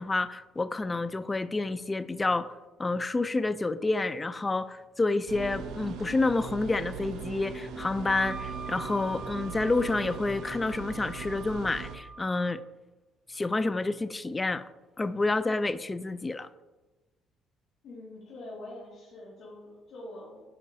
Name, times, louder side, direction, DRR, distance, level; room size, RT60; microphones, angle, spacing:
voice 1, 0.0-2.5 2.8-12.6 13.3-14.6 15.0-16.5, left 3 dB, 20° left, 14 dB, 0.4 m, -29 dB
sound 1, 5.3-12.0, right 5 dB, 75° right, 0.7 m, -40 dB
Wind instrument woodwind instrument, 8.1-12.6, right 4 dB, 45° right, 1.4 m, -44 dB
voice 2, 17.8-20.5, left 1 dB, 65° left, -7 dB, 1.9 m, -44 dB
10.0 x 5.1 x 2.7 m, 1.1 s
cardioid pair, 95°, 0 cm